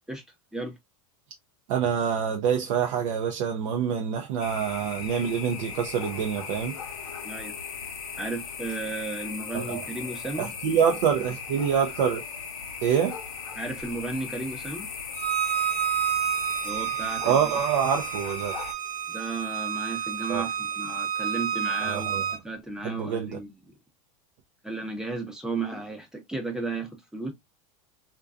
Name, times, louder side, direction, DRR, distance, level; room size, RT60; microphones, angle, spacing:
voice 1, 1.7-6.8 9.5-9.8 10.4-12.2 12.8-13.2 17.2-18.6 20.3-20.5 21.8-22.4 22.8-23.3, right 7 dB, 65° right, 0.6 m, -26 dB
sound 1, 4.4-18.7, left 6 dB, 90° left, 0.7 m, -38 dB
voice 2, 8.2-10.5 13.6-14.9 16.6-17.4 19.1-23.5 24.6-27.3, right 3 dB, 5° right, 0.8 m, -34 dB
Bowed string instrument, 15.2-22.4, right 9 dB, 45° right, 1.0 m, -30 dB
2.5 x 2.2 x 2.4 m
hypercardioid pair, 105°, 18 cm